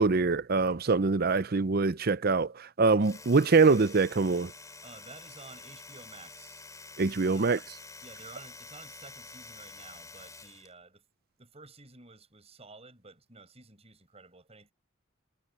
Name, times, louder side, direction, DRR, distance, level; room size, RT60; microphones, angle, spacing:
voice 1, 0.0-4.5 7.0-7.6, right 4 dB, 50° right, 0.6 m, -24 dB
Domestic sounds home sounds, 2.9-10.7, left 3 dB, 15° left, 4.2 m, -48 dB
voice 2, 4.8-6.6 7.2-7.5 8.0-11.0 11.4-14.7, right 3 dB, 30° right, 7.5 m, -52 dB
head